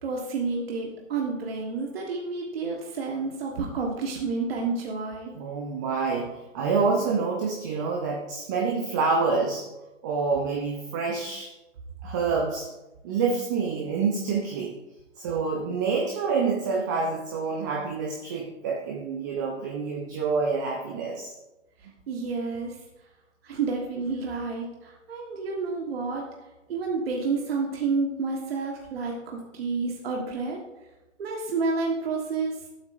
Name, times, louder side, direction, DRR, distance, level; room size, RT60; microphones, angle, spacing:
voice 1, 0.0-5.3 22.1-22.8 23.4-26.3 26.7-30.6 31.2-32.6, right 4 dB, 50° right, 0 dB, 1.5 m, -30 dB
voice 2, 5.3-9.7 10.0-11.5 12.0-12.7 13.0-14.7 15.2-21.3 21.8-21.9, right 4 dB, 15° right, 0 dB, 0.5 m, -27 dB
12.0 x 8.1 x 2.6 m, 1.0 s
figure-of-eight pair, 135°, 38 cm